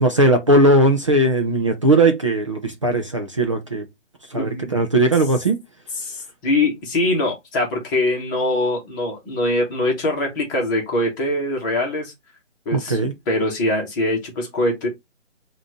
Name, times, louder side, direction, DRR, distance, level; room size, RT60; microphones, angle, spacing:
voice 1, 0.0-3.8 4.3-5.6 12.7-13.1, right 1 dB, 25° right, 0.5 m, -18 dB
voice 2, 4.3-4.7 6.0-12.1 12.6-13.0 13.3-14.9, left 1 dB, 15° left, 1.3 m, -23 dB
6.0 x 2.7 x 3.0 m
figure-of-eight pair, 155°, 37 cm